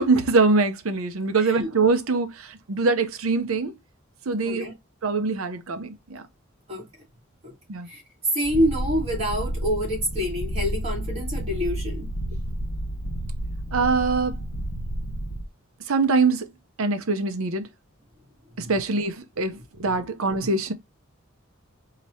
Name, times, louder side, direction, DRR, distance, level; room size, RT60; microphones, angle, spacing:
voice 1, 0.0-2.3 2.7-3.7 4.3-4.7 5.0-6.2 7.7-7.9 13.7-14.4 15.9-16.5 16.8-17.6 18.6-20.7, right 3 dB, 85° right, 0.7 m, -23 dB
voice 2, 1.4-1.7 4.4-4.7 6.7-6.9 7.4-7.5 7.9-8.0 8.3-12.1 18.6-18.7, equal, 30° right, 2.9 m, -27 dB
Purr, 8.4-15.4, right 1 dB, 55° left, 1.0 m, -30 dB
4.5 x 2.9 x 2.8 m
head